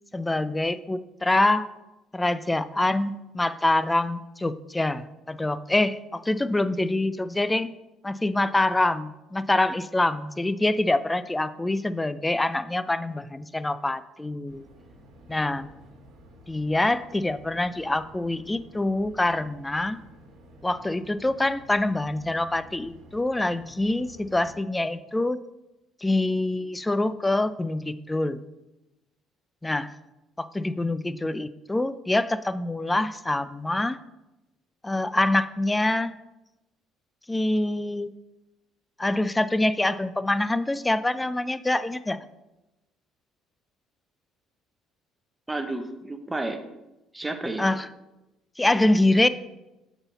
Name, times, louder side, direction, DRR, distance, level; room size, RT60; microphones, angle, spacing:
voice 1, 0.1-1.7 2.1-7.7 8.0-14.6 15.3-15.7 16.5-20.0 20.6-25.4 26.0-28.4 29.6-29.9 30.4-34.0 34.8-36.1 37.3-38.1 39.0-42.2 47.6-47.9 48.6-49.3, left 2 dB, 15° left, 14 dB, 0.4 m, -25 dB
sound 1, 14.5-24.5, equal, 65° right, 1.3 m, -51 dB
voice 2, 45.5-46.6 47.1-47.7, right 2 dB, 15° right, 7 dB, 0.8 m, -31 dB
7.8 x 4.0 x 4.1 m, 0.99 s
supercardioid pair, 75°, 0 cm